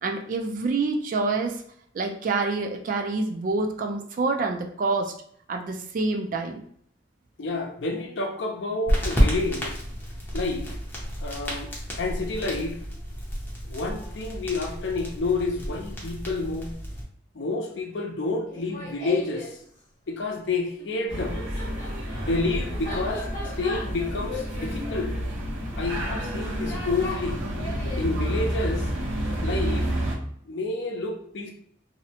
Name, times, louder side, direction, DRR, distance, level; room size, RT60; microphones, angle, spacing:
voice 1, 0.0-1.6 1.9-5.1 5.5-6.6, right 3 dB, 45° right, 3 dB, 0.3 m, -27 dB
voice 2, 7.4-9.8 10.3-10.7 11.2-11.7 12.0-12.8 13.7-16.7 17.3-19.5 20.1-21.4 22.2-23.3 23.6-25.1 25.8-27.4 28.0-28.9 29.4-29.9 30.5-31.5, left 3 dB, 65° left, 2 dB, 0.5 m, -29 dB
sound 1, 8.9-17.0, equal, 10° left, 0.5 m, -30 dB
Laughter, 18.5-19.6 20.8-28.1, left 2 dB, 45° left, 0.9 m, -38 dB
sound 2, 21.1-30.2, equal, 90° right, 0.8 m, -30 dB
2.7 x 2.0 x 2.7 m, 0.63 s
head